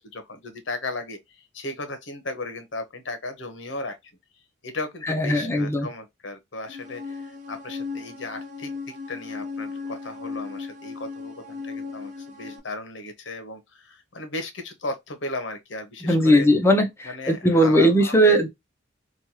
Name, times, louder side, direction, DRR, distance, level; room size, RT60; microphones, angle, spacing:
voice 1, 0.1-4.0 4.6-16.5 17.0-18.4, left 2 dB, 70° left, 0.9 m, -35 dB
voice 2, 5.1-5.9 16.0-18.5, equal, 15° left, 0.5 m, -19 dB
sound 1, 6.7-12.6, left 4 dB, 40° right, 0.7 m, -36 dB
3.1 x 2.3 x 2.8 m
head